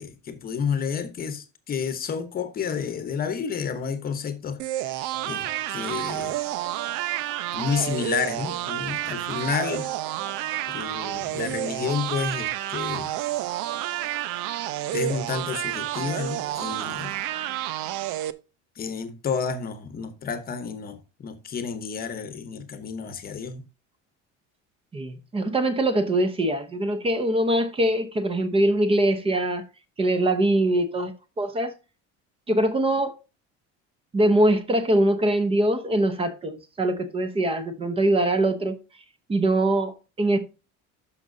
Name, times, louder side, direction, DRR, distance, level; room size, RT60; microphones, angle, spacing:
voice 1, 0.0-6.4 7.5-9.9 10.7-13.1 14.9-17.1 18.8-23.6, left 6 dB, 30° left, 1.0 m, -30 dB
sound 1, 4.6-18.3, right 13 dB, 80° right, 0.7 m, -30 dB
voice 2, 24.9-29.6 30.0-31.7 32.5-33.2 34.1-38.8 39.3-40.4, right 1 dB, 20° right, 0.8 m, -23 dB
12.5 x 5.7 x 2.7 m
cardioid pair, 165°, 30 cm